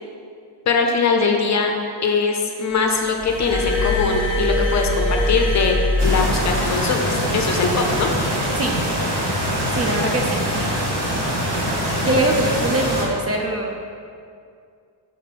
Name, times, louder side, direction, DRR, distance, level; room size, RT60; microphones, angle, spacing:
voice 1, 0.7-1.7 2.0-8.1, left 4 dB, 35° left, 3 dB, 0.6 m, -21 dB
Glass, 3.2-6.8 7.8-8.0, left 2 dB, 5° right, 1.3 m, -22 dB
sound 1, 6.0-13.0, equal, 60° right, 1.7 m, -23 dB
voice 2, 9.7-10.4 12.0-13.8, right 2 dB, 35° right, 1 dB, 0.4 m, -22 dB
6.5 x 3.8 x 5.6 m, 2.3 s
wide cardioid pair, 175°, 47 cm